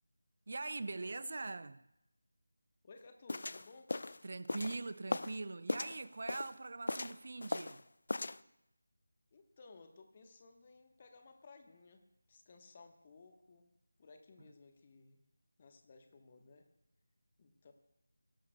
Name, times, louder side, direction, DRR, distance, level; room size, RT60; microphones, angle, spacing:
voice 1, 0.5-1.8 4.2-7.8, right 3 dB, 50° right, 0.4 m, -42 dB
voice 2, 2.8-3.9 9.3-13.7 14.0-15.2 15.6-16.7 17.4-17.7, left 3 dB, 30° left, 1.1 m, -59 dB
sound 1, 3.3-5.4 5.7-6.6 6.9-7.8 8.1-8.4, left 2 dB, 55° left, 0.3 m, -38 dB
18.0 x 12.0 x 2.3 m
figure-of-eight pair, 165°, 0 cm